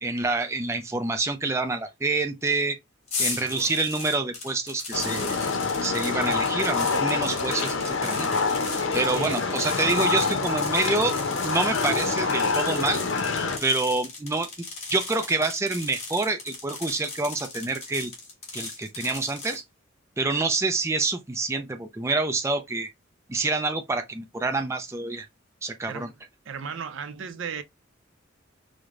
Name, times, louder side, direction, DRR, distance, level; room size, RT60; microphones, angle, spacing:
voice 1, 0.0-2.8 3.2-5.4 5.8-8.3 8.9-11.1 11.4-13.0 13.6-14.5 14.9-18.1 18.5-19.6 20.2-22.9 23.3-25.3 25.6-26.1, right 3 dB, 15° right, 0.3 m, -27 dB
sound 1, 3.1-19.6, left 3 dB, 35° left, 1.3 m, -37 dB
voice 2, 3.2-3.7 9.0-9.5 25.9-26.2 26.4-27.6, right 6 dB, 75° right, 0.5 m, -36 dB
sound 2, 4.9-13.6, left 4 dB, 80° left, 0.6 m, -26 dB
4.6 x 2.1 x 2.5 m
head